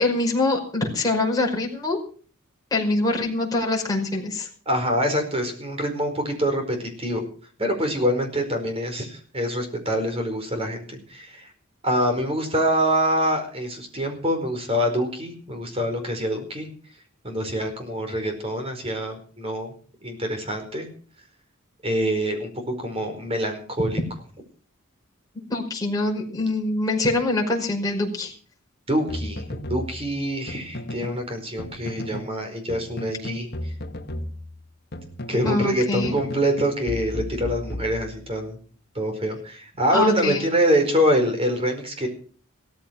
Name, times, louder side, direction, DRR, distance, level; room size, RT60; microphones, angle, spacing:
voice 1, 0.0-2.0 2.7-4.5 25.3-28.3 35.4-36.2 39.9-40.4, left 2 dB, 15° left, -1 dB, 5.3 m, -24 dB
voice 2, 4.7-7.2 7.6-11.5 11.8-16.7 17.2-19.7 20.0-20.9 21.8-22.5 22.8-24.0 28.9-29.4 29.7-33.7 35.3-38.6 38.9-42.1, equal, 25° right, 5 dB, 4.8 m, -25 dB
sound 1, 29.1-31.2 31.6-32.3 32.7-35.7 36.0-38.4, left 1 dB, 50° left, 1.6 m, -34 dB
17.0 x 14.5 x 5.9 m, 0.43 s
head